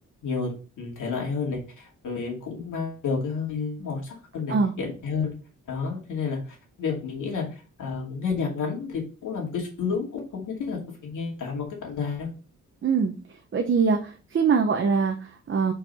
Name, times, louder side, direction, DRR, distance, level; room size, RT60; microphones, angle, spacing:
voice 1, 0.2-5.3 5.7-12.3, left 5 dB, 80° left, 0 dB, 2.6 m, -31 dB
voice 2, 12.8-13.1 13.5-15.7, right 5 dB, 40° right, 3 dB, 0.8 m, -23 dB
5.1 x 4.6 x 5.5 m, 0.36 s
wide cardioid pair, 155°, 31 cm